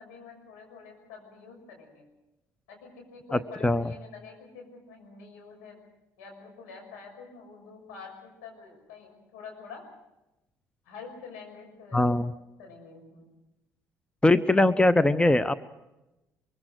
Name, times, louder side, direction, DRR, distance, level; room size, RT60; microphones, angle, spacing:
voice 1, 0.0-2.0 2.7-5.8 6.2-9.8 10.8-13.3, left 5 dB, 75° left, 1 dB, 6.4 m, -47 dB
voice 2, 3.3-3.9 11.9-12.3 14.2-15.5, left 2 dB, 10° left, 15 dB, 0.8 m, -21 dB
24.0 x 23.0 x 6.3 m, 0.97 s
hypercardioid pair, 50°, 9 cm